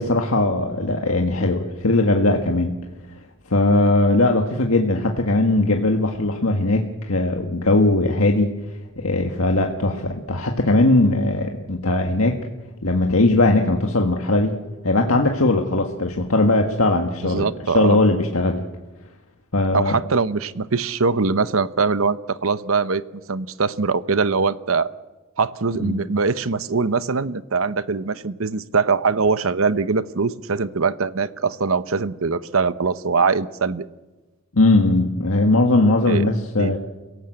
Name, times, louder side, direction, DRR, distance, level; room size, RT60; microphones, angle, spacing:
voice 1, 0.0-2.8 3.5-8.5 9.0-12.4 12.8-18.6 19.5-20.0 25.8-26.0 34.5-36.8, left 2 dB, 85° left, 2 dB, 1.8 m, -19 dB
voice 2, 17.2-18.0 19.7-23.0 23.3-24.9 25.4-33.8 36.1-36.3 36.6-36.8, right 4 dB, 75° right, 14 dB, 0.9 m, -22 dB
28.5 x 17.5 x 7.9 m, 1.1 s
head